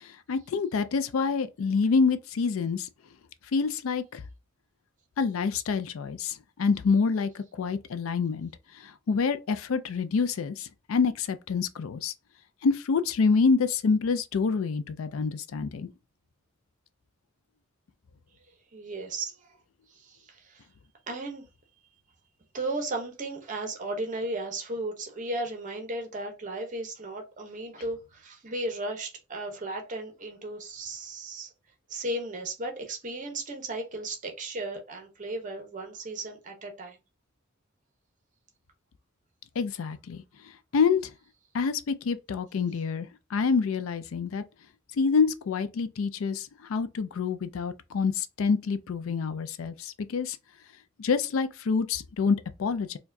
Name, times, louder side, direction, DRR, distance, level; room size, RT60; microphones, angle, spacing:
voice 1, 0.0-2.9 3.5-4.2 5.2-8.5 9.1-12.1 12.6-15.9 39.6-40.2 40.7-41.1 41.5-44.4 45.0-50.4 51.0-53.0, left 5 dB, 80° left, 0.4 m, -27 dB
voice 2, 18.7-19.4 20.0-20.6 21.1-21.4 22.5-31.5 31.9-37.0, right 2 dB, 40° right, 0.8 m, -35 dB
4.5 x 2.2 x 2.6 m
head